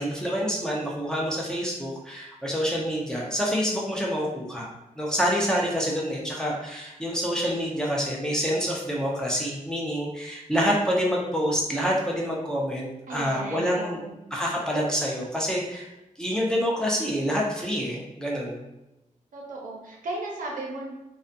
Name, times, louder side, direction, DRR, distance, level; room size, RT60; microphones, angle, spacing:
voice 1, 0.0-4.7 5.0-14.0 14.3-15.9 16.2-18.6, equal, 5° left, -4 dB, 0.5 m, -27 dB
voice 2, 13.1-14.1 19.3-20.9, right 2 dB, 80° right, -1 dB, 0.6 m, -35 dB
2.4 x 2.2 x 2.5 m, 0.94 s
wide cardioid pair, 110°, 14 cm